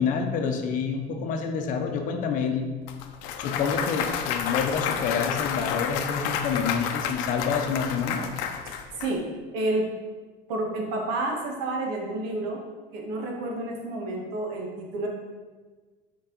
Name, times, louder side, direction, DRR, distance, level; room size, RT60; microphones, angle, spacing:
voice 1, 0.0-2.6 3.4-8.2, left 6 dB, 45° left, 4 dB, 0.7 m, -28 dB
Clapping / Cheering / Applause, 2.9-9.1, left 8 dB, 80° left, 0.6 m, -30 dB
voice 2, 8.6-9.2 9.5-9.8 10.5-12.6 12.9-15.1, right 2 dB, 75° right, 0 dB, 1.5 m, -30 dB
7.0 x 4.6 x 3.9 m, 1.4 s
cardioid pair, 155°, 18 cm